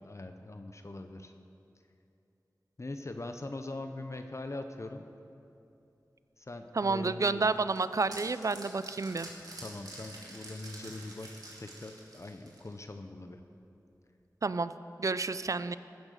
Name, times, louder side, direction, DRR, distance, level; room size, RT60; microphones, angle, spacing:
voice 1, 0.0-1.3 2.8-5.0 6.4-7.5 9.6-13.4, left 2 dB, 45° left, 7 dB, 0.7 m, -42 dB
voice 2, 6.7-9.3 14.4-14.7 15.0-15.8, right 3 dB, 50° right, 14 dB, 0.4 m, -30 dB
sound 1, 7.4-12.9, right 1 dB, 70° right, 2.4 m, -48 dB
15.0 x 6.3 x 6.5 m, 2.7 s
wide cardioid pair, 40°, 7 cm